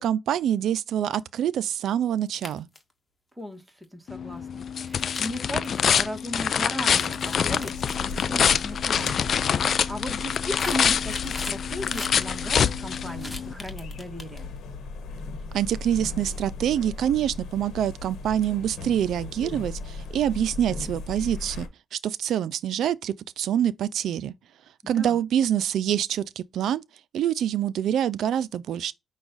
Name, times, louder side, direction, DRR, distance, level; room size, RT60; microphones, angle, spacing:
voice 1, 0.0-2.7 15.5-21.7 21.9-24.3 24.9-26.8 27.1-28.9, right 10 dB, 75° right, 0.4 m, -26 dB
sound 1, 2.3-2.9 3.7-3.8 4.9-5.7 6.7-8.0 8.8-9.0 9.3-9.7 10.1-12.2 13.2-14.6, left 2 dB, 15° left, 1.5 m, -39 dB
voice 2, 3.4-7.7 8.0-14.5 24.8-25.2, equal, 5° right, 1.2 m, -36 dB
sound 2, 4.1-13.5, left 7 dB, 55° left, 0.3 m, -25 dB
sound 3, 7.5-21.7, left 3 dB, 75° left, 1.1 m, -38 dB
5.9 x 2.3 x 3.9 m
cardioid pair, 90°, 0 cm